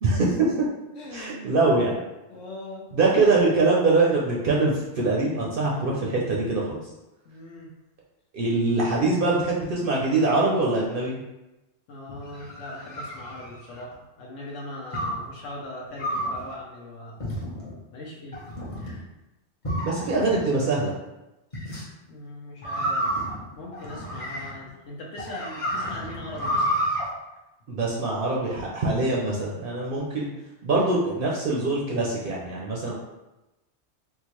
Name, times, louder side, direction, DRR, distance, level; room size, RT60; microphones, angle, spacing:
voice 1, 0.0-0.7 1.1-2.0 2.9-6.8 8.3-11.2 19.7-20.9 27.7-30.3 30.6-32.9, right 3 dB, 60° right, -4 dB, 0.6 m, -23 dB
voice 2, 1.0-1.6 2.3-2.9 7.2-7.7 11.9-17.4 17.9-18.4 18.8-19.1 22.0-23.1 23.5-26.8 32.9-33.0, left 1 dB, 80° left, -3 dB, 1.0 m, -40 dB
sound 1, 12.1-13.9 14.9-15.3 16.0-16.4 17.2-17.7 18.3-18.9 19.6-20.4 21.5-21.8 22.6-24.7 25.2-27.0, equal, 35° left, 0.8 m, -30 dB
3.7 x 2.3 x 2.9 m, 0.99 s
omnidirectional pair, 1.2 m